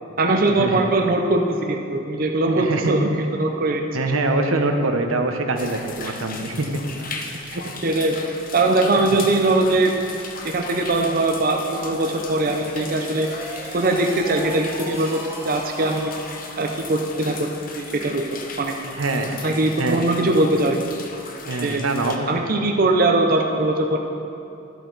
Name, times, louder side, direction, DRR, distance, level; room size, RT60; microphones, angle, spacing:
voice 1, 0.2-3.8 4.2-4.3 7.8-8.2 8.5-9.9 10.4-13.3 13.7-15.2 15.4-16.1 16.6-18.3 18.6-18.7 19.4-20.8 21.6-21.8 22.3-24.0, right 2 dB, 45° right, 3 dB, 0.6 m, -21 dB
voice 2, 2.6-2.9 3.9-6.8 18.9-19.4 19.8-20.1 21.5-22.4, right 2 dB, 85° right, 5 dB, 0.9 m, -24 dB
sound 1, 5.6-22.2, left 4 dB, 45° left, 0.8 m, -37 dB
sound 2, 12.2-17.0, right 1 dB, 10° right, 1.0 m, -38 dB
13.0 x 7.8 x 4.0 m, 2.7 s
head